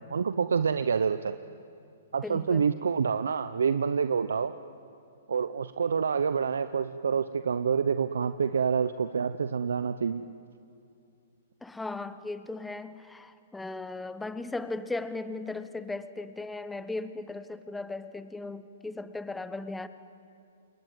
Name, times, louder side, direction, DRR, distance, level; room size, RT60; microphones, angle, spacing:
voice 1, 0.0-1.3 2.1-4.5 5.3-10.2, right 6 dB, 80° right, 11 dB, 0.8 m, -27 dB
voice 2, 2.2-2.7 11.6-19.9, left 2 dB, 5° left, 12 dB, 1.1 m, -37 dB
28.5 x 22.5 x 9.3 m, 2.6 s
hypercardioid pair, 135°, 0 cm